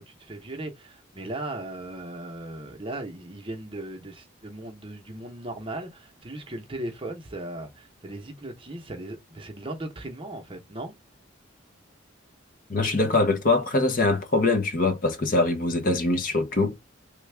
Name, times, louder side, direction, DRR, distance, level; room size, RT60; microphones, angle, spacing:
voice 1, 0.0-10.9, right 1 dB, 25° right, 0.8 m, -37 dB
voice 2, 12.7-16.8, left 2 dB, 45° left, 0.7 m, -23 dB
3.2 x 2.3 x 3.3 m
head